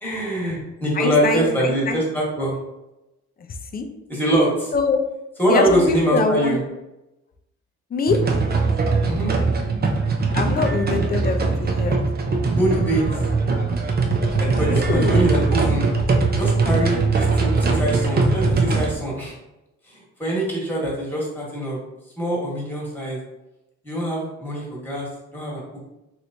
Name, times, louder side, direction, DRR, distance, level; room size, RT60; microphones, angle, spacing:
voice 1, 0.0-2.5 4.1-4.7 5.4-6.6 9.0-9.3 12.5-13.0 14.4-15.9 16.3-19.3 19.9-21.8 22.2-23.2 23.8-25.8, right 1 dB, 5° left, -4 dB, 1.4 m, -23 dB
voice 2, 1.0-2.0 3.7-3.9 4.7-5.0 5.5-6.6 7.9-8.2 10.3-12.0 14.7-15.4, left 4 dB, 30° left, 6 dB, 0.5 m, -24 dB
sound 1, 8.1-18.9, right 3 dB, 30° right, 0.5 m, -21 dB
3.1 x 3.1 x 2.6 m, 0.96 s
cardioid pair, 90°, 30 cm